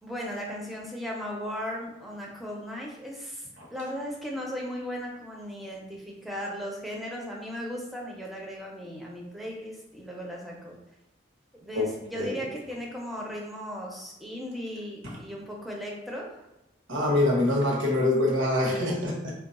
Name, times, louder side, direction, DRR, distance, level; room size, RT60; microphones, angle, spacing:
voice 1, 0.0-10.7 11.5-16.4, equal, ahead, -2 dB, 0.5 m, -37 dB
voice 2, 12.1-12.5 16.9-19.3, left 1 dB, 70° right, -3 dB, 0.9 m, -25 dB
3.0 x 2.2 x 4.0 m, 0.91 s
head